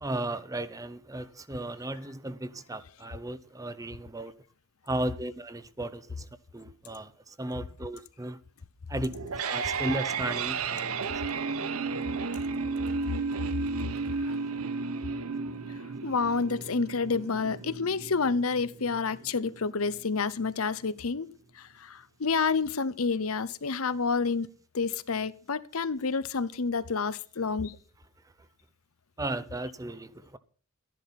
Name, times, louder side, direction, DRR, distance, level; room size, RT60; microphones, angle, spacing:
voice 1, 0.0-4.3 4.9-6.0 6.5-7.1 7.4-8.4 8.9-9.1 9.4-11.1 29.2-30.4, right 1 dB, 15° right, 0.6 m, -35 dB
sound 1, 9.0-20.0, right 4 dB, 85° right, 0.9 m, -33 dB
voice 2, 16.0-21.3 21.6-24.5 24.7-27.8, left 4 dB, 80° left, 0.8 m, -29 dB
12.5 x 10.5 x 5.8 m
head